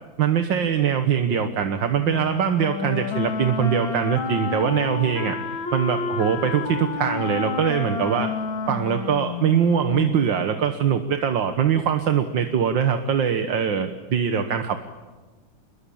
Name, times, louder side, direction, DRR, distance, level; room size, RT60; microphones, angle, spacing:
voice 1, 0.2-5.4 5.7-8.3 8.7-14.8, right 8 dB, 70° right, 7 dB, 1.9 m, -22 dB
Wind instrument woodwind instrument, 2.0-10.2, left 5 dB, 80° left, 2.6 m, -30 dB
28.0 x 22.0 x 8.7 m, 1.3 s
omnidirectional pair, 2.1 m